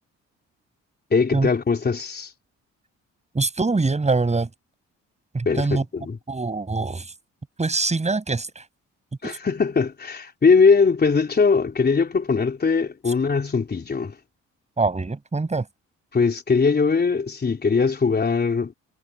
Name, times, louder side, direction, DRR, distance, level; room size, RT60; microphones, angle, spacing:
voice 1, 1.1-2.3 5.5-6.2 9.2-14.2 16.1-18.7, left 5 dB, 35° left, 3.7 m, -20 dB
voice 2, 3.3-4.5 5.3-5.8 6.3-7.1 7.6-8.6 9.2-9.4 14.8-15.7, right 3 dB, 20° right, 7.0 m, -24 dB
cardioid pair, 90°, 30 cm